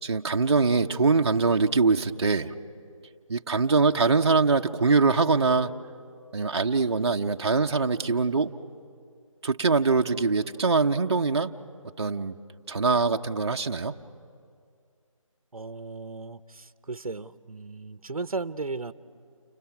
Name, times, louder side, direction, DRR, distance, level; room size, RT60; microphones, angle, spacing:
voice 1, 0.0-2.5 3.3-5.7 6.3-8.5 9.4-11.5 12.0-12.3 12.7-13.9, right 4 dB, 50° right, 3 dB, 0.8 m, -23 dB
voice 2, 15.5-18.9, right 3 dB, 85° right, 13 dB, 0.8 m, -35 dB
29.5 x 27.0 x 5.9 m, 2.3 s
figure-of-eight pair, 165°, 18 cm